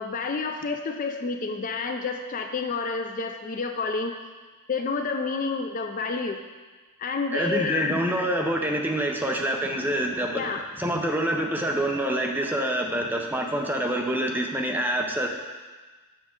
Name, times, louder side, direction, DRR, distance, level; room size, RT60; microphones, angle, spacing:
voice 1, 0.0-4.1 4.7-6.4 7.0-8.3 10.3-10.6, left 4 dB, 35° left, 5 dB, 0.4 m, -29 dB
voice 2, 7.3-10.5 10.8-15.3, right 1 dB, 10° right, 1 dB, 0.5 m, -26 dB
7.1 x 6.4 x 3.7 m, 1.3 s
head